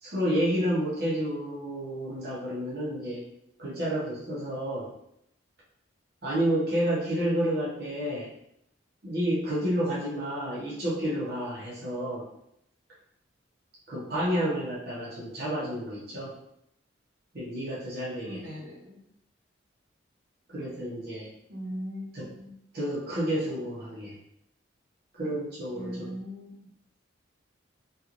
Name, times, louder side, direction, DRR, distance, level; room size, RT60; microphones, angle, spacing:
voice 1, 0.0-3.2 3.6-4.9 6.2-8.3 9.0-12.3 13.9-16.3 17.3-18.4 20.5-21.3 22.1-22.3 22.7-24.2 25.1-26.1, equal, 55° right, -8 dB, 0.8 m, -30 dB
voice 2, 18.2-19.0 21.5-22.5 25.7-26.5, equal, 85° right, -5 dB, 1.0 m, -39 dB
3.0 x 2.5 x 2.4 m, 0.77 s
head